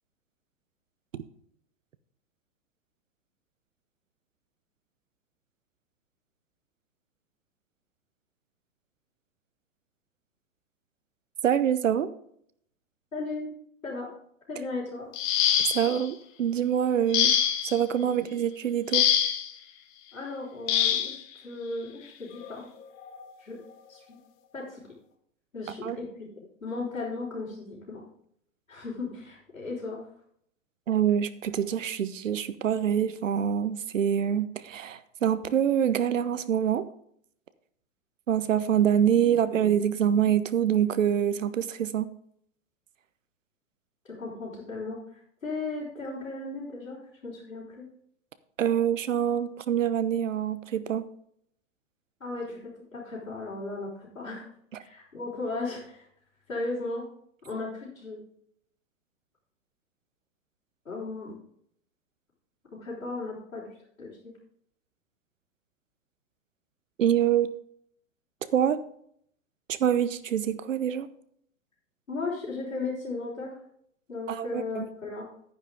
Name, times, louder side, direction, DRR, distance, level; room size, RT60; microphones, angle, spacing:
voice 1, 11.4-12.1 15.7-17.4 17.6-19.1 25.8-26.0 30.9-36.8 38.3-42.1 48.6-51.0 67.0-67.5 68.5-68.8 69.7-71.1 74.3-74.9, right 9 dB, 75° right, 13 dB, 1.0 m, -25 dB
voice 2, 13.1-13.5 13.8-14.1 14.5-15.1 18.0-18.2 20.1-22.7 23.4-23.6 23.9-24.2 24.5-24.8 25.5-28.0 28.7-30.1 44.0-47.8 52.2-54.5 54.8-56.0 56.5-57.0 57.4-58.2 60.8-61.3 62.8-63.7 64.0-64.3 72.1-73.6 74.1-75.3, left 3 dB, 90° left, -8 dB, 4.6 m, -36 dB
sound 1, 15.1-16.0 17.1-17.8 18.9-19.5 20.7-21.2 22.4-22.5 23.0-23.2, left 9 dB, 35° left, 1.3 m, -24 dB
10.5 x 9.8 x 3.6 m, 0.68 s
figure-of-eight pair, 105°, 39 cm